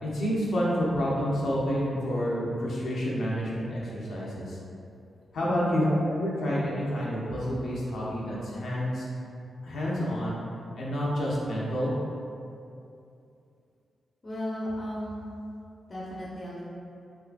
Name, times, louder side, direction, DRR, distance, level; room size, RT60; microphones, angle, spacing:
voice 1, 0.0-4.6 5.3-9.1 9.6-10.4 10.8-11.9, equal, 70° left, -6 dB, 0.6 m, -29 dB
voice 2, 5.4-6.0 14.2-15.2 15.9-16.6, equal, 35° left, -8 dB, 0.7 m, -34 dB
3.4 x 3.0 x 2.5 m, 2.6 s
cardioid pair, 85°, 0 cm